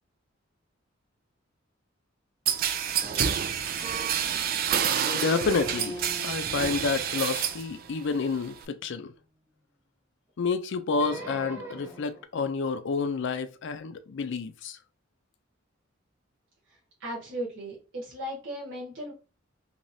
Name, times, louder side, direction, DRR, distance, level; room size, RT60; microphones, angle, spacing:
sound 1, 2.5-7.7 8.0-8.6, right 8 dB, 45° right, 0.3 m, -28 dB
sound 2, 3.0-4.4 4.8-9.1 10.9-12.2, right 1 dB, 10° right, 0.7 m, -42 dB
voice 1, 5.1-9.1 10.4-14.8, left 4 dB, 60° left, 0.4 m, -29 dB
voice 2, 16.7-19.1, equal, 60° right, 1.3 m, -37 dB
3.2 x 2.9 x 2.6 m
head